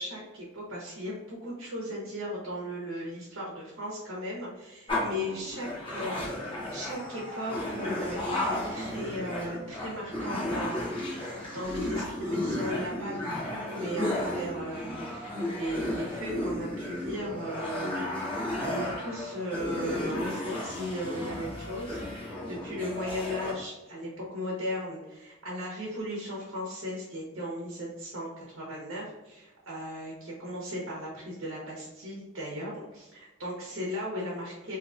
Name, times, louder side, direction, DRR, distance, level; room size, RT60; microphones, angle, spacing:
voice 1, 0.0-34.8, equal, 70° right, -4 dB, 0.9 m, -37 dB
sound 1, 4.9-23.5, left 1 dB, 25° left, 0.9 m, -34 dB
3.6 x 2.9 x 2.5 m, 1.1 s
head